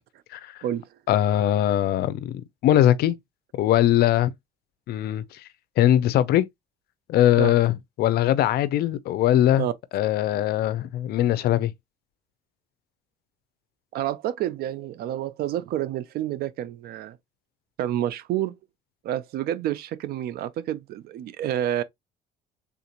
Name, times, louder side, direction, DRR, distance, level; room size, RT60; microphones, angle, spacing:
voice 1, 1.1-2.3 2.6-3.2 3.6-4.3 4.9-5.2 5.8-6.4 7.1-9.6 9.9-11.7, left 12 dB, 60° left, 0.5 m, -21 dB
voice 2, 13.9-17.2 17.8-18.6 19.0-21.8, right 12 dB, 60° right, 0.5 m, -29 dB
3.6 x 2.5 x 2.8 m
cardioid pair, 115°, 18 cm